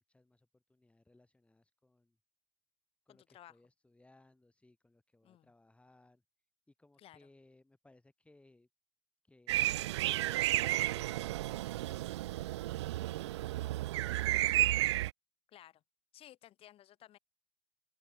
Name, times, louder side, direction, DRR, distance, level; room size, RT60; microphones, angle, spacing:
voice 1, 0.0-2.2 3.0-6.2 6.7-8.7 9.2-12.9 13.5-14.6, left 2 dB, 5° left, 5.2 m, -65 dB
voice 2, 3.1-3.6 5.2-5.5 7.0-7.2 15.5-15.8 16.1-17.2, left 12 dB, 35° left, 2.0 m, -57 dB
sound 1, 9.5-15.1, right 16 dB, 60° right, 0.4 m, -32 dB
open air
figure-of-eight pair, 80°, 17 cm